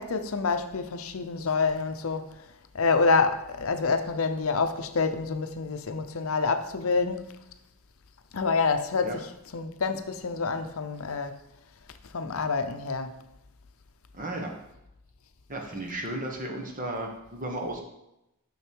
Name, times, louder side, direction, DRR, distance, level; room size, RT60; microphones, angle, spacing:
voice 1, 0.0-2.3 2.7-7.4 8.3-11.4 12.1-13.1, left 4 dB, 65° left, 0.6 m, -27 dB
voice 2, 14.1-14.6 15.5-17.8, right 1 dB, 35° right, 1.3 m, -34 dB
6.7 x 6.2 x 4.6 m
head